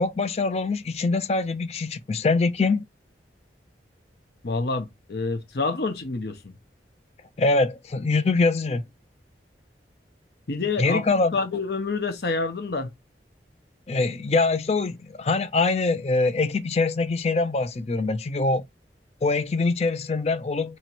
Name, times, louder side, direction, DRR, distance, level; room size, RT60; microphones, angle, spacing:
voice 1, 0.0-2.8 7.4-8.8 10.8-11.3 13.9-18.6 19.2-20.8, left 3 dB, 35° left, 0.4 m, -23 dB
voice 2, 4.4-6.5 10.5-12.9, left 3 dB, 65° left, 0.8 m, -28 dB
2.9 x 2.9 x 4.4 m
head